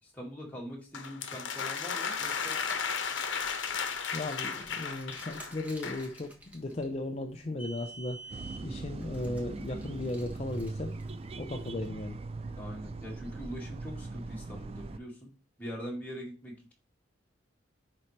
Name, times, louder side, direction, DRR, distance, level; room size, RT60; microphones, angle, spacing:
voice 1, 0.0-2.6 12.6-15.3 15.6-16.7, equal, 10° left, -3 dB, 2.2 m, -42 dB
sound 1, 0.9-6.1, left 6 dB, 70° left, 0.9 m, -34 dB
Car, 2.2-11.7, right 1 dB, 10° right, 1.3 m, -50 dB
voice 2, 3.7-11.0 11.4-12.2, left 2 dB, 35° left, 4 dB, 0.5 m, -36 dB
sound 2, 8.3-15.0, right 3 dB, 30° right, 0.3 m, -40 dB
10.0 x 4.3 x 3.2 m, 0.35 s
head